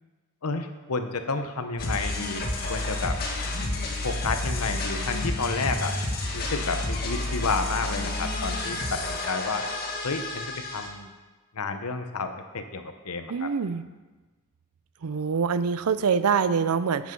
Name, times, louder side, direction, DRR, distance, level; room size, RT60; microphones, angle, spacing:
voice 1, 0.4-3.2 4.0-5.9 6.3-9.6 10.0-11.1 11.5-13.5, left 4 dB, 90° left, 7 dB, 0.9 m, -31 dB
sound 1, 1.8-10.9, left 2 dB, 45° left, 2.0 m, -30 dB
voice 2, 13.3-13.9 15.0-17.1, right 6 dB, 80° right, 13 dB, 0.5 m, -25 dB
9.5 x 8.3 x 5.3 m, 1.2 s
head